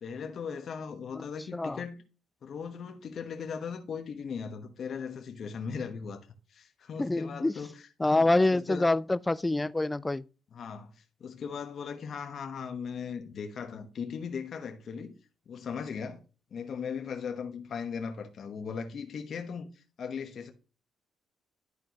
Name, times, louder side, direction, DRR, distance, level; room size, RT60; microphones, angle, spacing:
voice 1, 0.0-2.0 2.4-8.9 10.5-15.1 15.5-16.2 16.5-20.5, left 6 dB, 55° left, 1.0 m, -38 dB
voice 2, 7.0-7.5 8.0-10.2, left 2 dB, 15° left, 0.3 m, -26 dB
11.0 x 4.5 x 2.9 m
cardioid pair, 90°, 0 cm